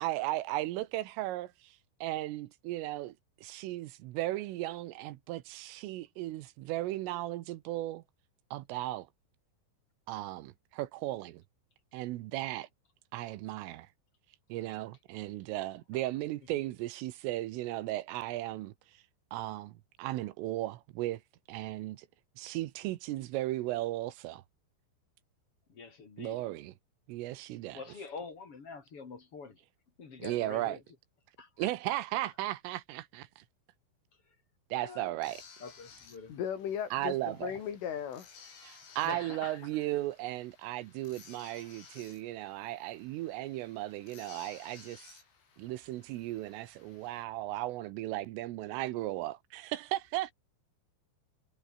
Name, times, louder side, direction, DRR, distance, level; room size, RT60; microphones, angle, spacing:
voice 1, 0.0-3.2 3.4-8.0 8.5-9.1 10.1-11.4 11.9-12.7 13.1-13.9 14.5-18.7 19.3-21.2 21.5-22.1 22.4-24.4 26.2-26.7 27.1-27.8 30.2-30.8 31.6-33.5 34.7-35.4 36.9-37.5 38.6-45.2 45.6-50.3, right 16 dB, 80° right, 3.6 m, -36 dB
voice 2, 25.7-26.4 27.7-29.6 30.0-30.8 31.4-31.7 32.2-32.3 34.7-35.1 35.6-36.4 39.0-39.6, left 4 dB, 35° left, 3.1 m, -45 dB
sound 1, 35.2-47.2, left 6 dB, 85° left, 9.7 m, -57 dB
voice 3, 36.3-38.3, left 9 dB, 70° left, 6.1 m, -36 dB
omnidirectional pair, 5.9 m